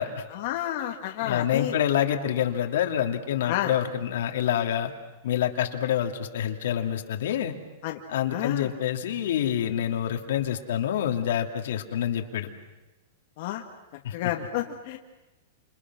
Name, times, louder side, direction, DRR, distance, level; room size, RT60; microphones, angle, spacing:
voice 1, 0.3-1.7 3.5-3.7 7.8-8.0 8.3-8.7 13.4-13.6 14.1-15.0, left 13 dB, 55° left, 1 dB, 2.0 m, -30 dB
voice 2, 1.2-4.9 5.2-7.5 8.1-12.5 14.0-14.1, left 10 dB, 75° left, 4 dB, 2.6 m, -27 dB
29.5 x 28.0 x 6.2 m, 1.1 s
hypercardioid pair, 145°, 0 cm